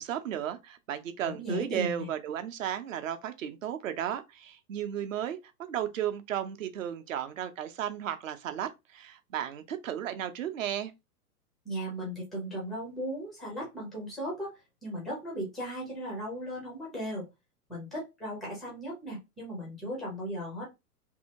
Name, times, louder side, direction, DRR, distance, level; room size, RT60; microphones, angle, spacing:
voice 1, 0.0-10.9, right 10 dB, 55° right, 0.6 m, -34 dB
voice 2, 1.3-2.1 11.6-17.2 17.7-20.7, equal, ahead, 0.4 m, -37 dB
2.7 x 2.7 x 2.7 m
figure-of-eight pair, 100°, 47 cm